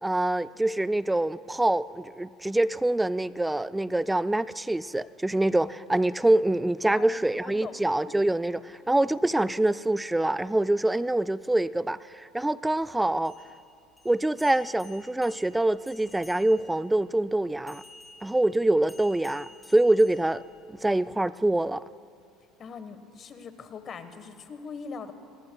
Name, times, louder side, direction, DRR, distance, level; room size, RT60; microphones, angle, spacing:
voice 1, 0.0-13.3 14.1-17.8 18.2-20.4 20.7-21.8, right 1 dB, 10° right, 15 dB, 0.3 m, -25 dB
voice 2, 6.9-7.8 8.1-8.2 8.7-8.9 22.6-25.1, left 5 dB, 45° left, 10 dB, 1.3 m, -41 dB
sound 1, 13.1-16.8 17.7-20.9, left 2 dB, 10° left, 3.5 m, -53 dB
24.0 x 19.0 x 2.3 m, 2.5 s
supercardioid pair, 80°, 0 cm